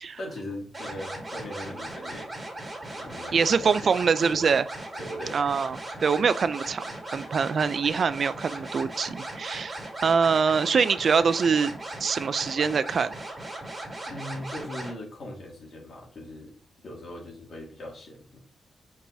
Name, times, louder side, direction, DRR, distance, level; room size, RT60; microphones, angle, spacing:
voice 1, 0.2-2.3 2.9-3.9 4.2-4.5 4.9-5.4 13.5-13.6 14.1-16.5 16.8-18.4, left 1 dB, 65° left, -1 dB, 2.4 m, -39 dB
sound 1, 0.7-14.9, right 1 dB, 15° right, 2.6 m, -38 dB
voice 2, 3.3-4.6 5.3-11.7 12.0-13.1, right 5 dB, 55° right, 15 dB, 0.4 m, -24 dB
7.7 x 4.7 x 2.7 m, 0.43 s
wide cardioid pair, 145°, 0 cm